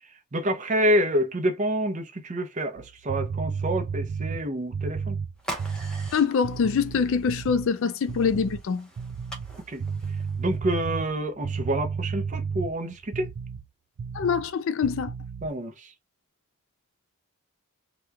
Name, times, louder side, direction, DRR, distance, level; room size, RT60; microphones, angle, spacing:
voice 1, 0.3-5.2 9.7-9.8 10.4-13.3 15.4-15.9, equal, 35° right, 0.6 m, -27 dB
sound 1, 2.8-7.7 8.1-8.7 9.0-13.7 14.0-14.5 14.8-15.5, right 5 dB, 75° right, 0.5 m, -33 dB
sound 2, 5.4-10.6, right 1 dB, 5° left, 0.7 m, -43 dB
voice 2, 6.1-8.9 14.1-15.1, left 6 dB, 60° left, 0.4 m, -24 dB
2.9 x 2.2 x 3.4 m
head